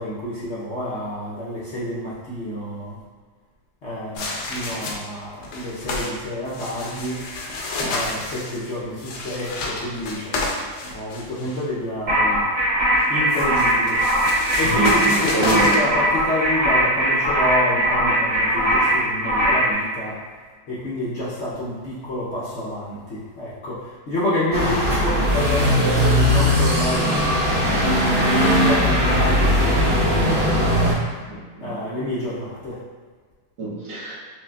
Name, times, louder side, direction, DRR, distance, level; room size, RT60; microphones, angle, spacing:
voice 1, 0.0-3.0 3.8-7.2 7.9-10.5 10.8-12.4 13.1-14.0 14.6-20.2 20.7-27.6 28.1-30.6 31.6-32.8, left 1 dB, 60° left, -9 dB, 0.7 m, -28 dB
sound 1, 4.1-5.1 5.4-6.1 6.5-11.6 13.0-15.8, left 2 dB, 80° left, 1.2 m, -29 dB
sound 2, 12.1-19.7, right 1 dB, 45° right, 1.4 m, -20 dB
voice 2, 14.7-15.7 31.3-31.7 33.6-34.1, right 2 dB, 80° right, -8 dB, 1.6 m, -26 dB
sound 3, 24.5-30.9, equal, 10° right, 0.5 m, -19 dB
5.8 x 2.5 x 2.3 m, 1.5 s
omnidirectional pair, 1.9 m